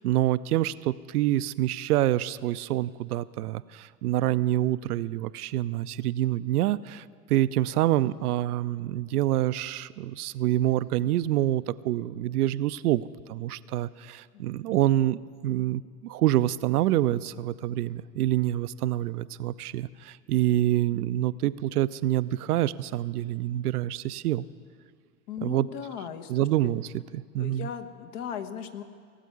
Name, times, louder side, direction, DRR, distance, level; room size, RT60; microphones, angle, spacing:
voice 1, 0.0-13.0 13.3-24.4 25.4-25.7 26.3-26.9 27.1-27.7, right 14 dB, 70° right, 16 dB, 0.6 m, -26 dB
voice 2, 14.3-15.1 25.3-26.7 27.4-28.8, left 8 dB, 50° left, 7 dB, 1.3 m, -38 dB
18.0 x 8.2 x 9.5 m, 2.1 s
hypercardioid pair, 100°, 47 cm